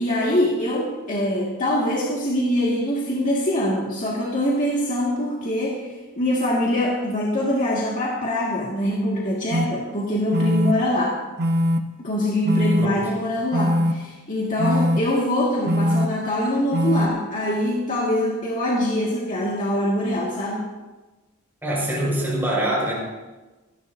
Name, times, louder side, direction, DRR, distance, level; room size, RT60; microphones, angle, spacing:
voice 1, 0.0-11.2 12.0-20.6, left 1 dB, 40° left, -5 dB, 2.1 m, -23 dB
sound 1, 9.5-9.7 10.3-10.7 11.4-11.8 12.4-12.9 13.5-13.9 14.6-15.0 15.7-16.1 16.7-17.1, equal, 50° right, 0.9 m, -21 dB
voice 2, 21.6-22.9, right 1 dB, 10° right, -6 dB, 5.7 m, -24 dB
25.5 x 12.0 x 2.8 m, 1.2 s
head